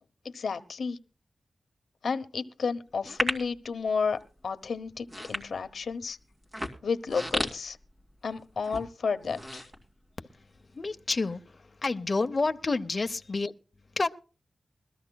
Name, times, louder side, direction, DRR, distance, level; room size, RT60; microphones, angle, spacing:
voice 1, 0.3-1.0 2.0-6.2 6.8-7.8 8.2-9.7, left 5 dB, 85° left, 0.9 m, -32 dB
sound 1, 3.0-3.6 4.2-4.4 5.0-5.9 6.4-8.3 8.6-8.9 9.2-10.4 10.8-10.9, equal, 30° right, 2.3 m, -33 dB
voice 2, 10.7-13.5 14.0-14.1, left 3 dB, 40° left, 0.7 m, -29 dB
21.5 x 13.5 x 2.3 m
wide cardioid pair, 120°, 0 cm